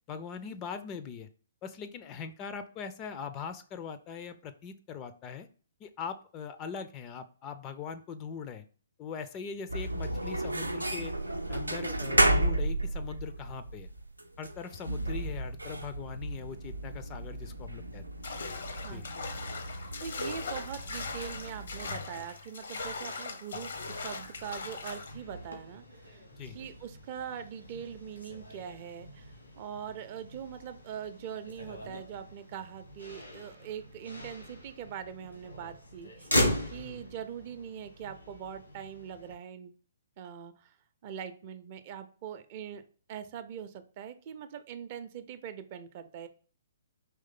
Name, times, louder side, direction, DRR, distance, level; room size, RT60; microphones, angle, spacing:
voice 1, 0.1-1.3 1.6-5.5 5.8-8.6 9.0-11.1 11.5-13.9 14.4-18.0 18.9-19.0 26.3-26.6 36.8-37.0, left 6 dB, 25° left, 10 dB, 0.4 m, -41 dB
sound 1, 9.7-21.9, right 1 dB, 90° right, 0.5 m, -33 dB
sound 2, 18.2-25.1, left 4 dB, 65° left, 0.7 m, -39 dB
voice 2, 18.8-19.3 20.0-26.2 26.5-29.3 29.6-36.4 36.7-39.7 40.2-40.8 41.0-42.8 43.1-46.3, right 8 dB, 35° right, 9 dB, 0.5 m, -42 dB
Motor vehicle (road), 23.5-39.3, left 1 dB, 90° left, 1.6 m, -39 dB
4.4 x 3.1 x 3.7 m, 0.40 s
figure-of-eight pair, 125°, 0 cm